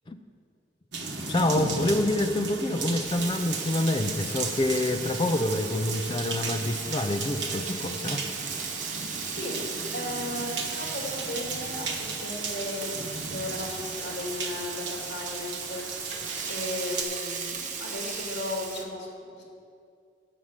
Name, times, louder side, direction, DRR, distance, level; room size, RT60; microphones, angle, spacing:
sound 1, 0.9-17.0, right 4 dB, 80° right, 1.1 m, -35 dB
voice 1, 1.3-8.2, left 1 dB, 25° left, 7 dB, 0.4 m, -27 dB
Frying (food), 3.0-18.8, right 6 dB, 45° right, 0.8 m, -37 dB
voice 2, 9.2-19.4, left 1 dB, 65° left, -2 dB, 2.5 m, -36 dB
8.5 x 6.3 x 7.3 m, 2.5 s
head